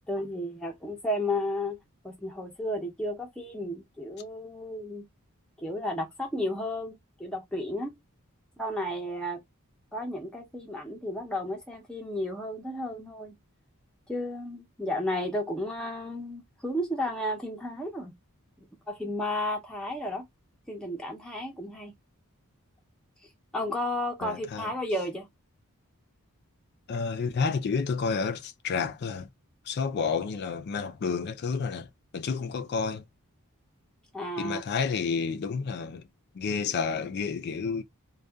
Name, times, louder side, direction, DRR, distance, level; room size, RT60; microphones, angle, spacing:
voice 1, 0.1-1.8 2.0-5.0 5.6-7.9 8.6-9.4 9.9-13.3 14.1-18.1 18.9-20.2 20.7-21.9 23.5-25.3 34.1-34.6, left 1 dB, 5° left, 0.6 m, -33 dB
voice 2, 24.2-24.7 26.9-29.3 29.7-31.9 32.1-33.0 34.4-36.0 36.3-37.8, left 5 dB, 50° left, 0.4 m, -30 dB
2.6 x 2.3 x 2.3 m
head